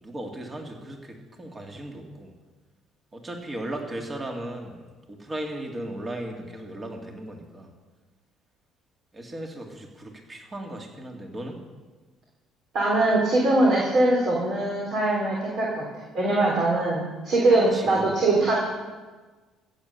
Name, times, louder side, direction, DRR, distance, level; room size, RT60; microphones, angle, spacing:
voice 1, 0.0-2.3 3.1-7.7 9.1-11.6 17.7-18.1, right 1 dB, 30° right, 2 dB, 2.4 m, -36 dB
voice 2, 12.7-15.9 16.1-18.5, right 2 dB, 60° right, -3 dB, 3.5 m, -22 dB
15.5 x 8.0 x 6.9 m, 1.3 s
hypercardioid pair, 60°, 0 cm